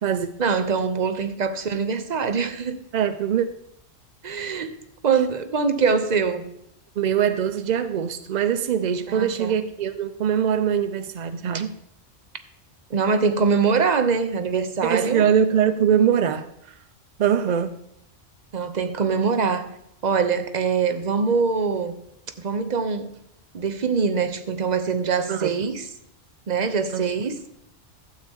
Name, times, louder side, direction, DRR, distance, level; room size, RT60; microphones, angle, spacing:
voice 1, 0.4-2.8 4.2-4.7 5.0-6.5 9.1-9.6 11.5-11.6 12.9-15.3 18.5-19.6 20.0-21.9 22.4-23.1 23.5-25.9 26.5-27.5, right 5 dB, 40° right, 0.7 m, -23 dB
voice 2, 2.9-3.5 7.0-11.7 14.8-16.5 17.2-17.8 25.3-25.5 26.9-27.1, right 8 dB, 70° right, 0.4 m, -22 dB
12.5 x 8.2 x 3.5 m
omnidirectional pair, 1.3 m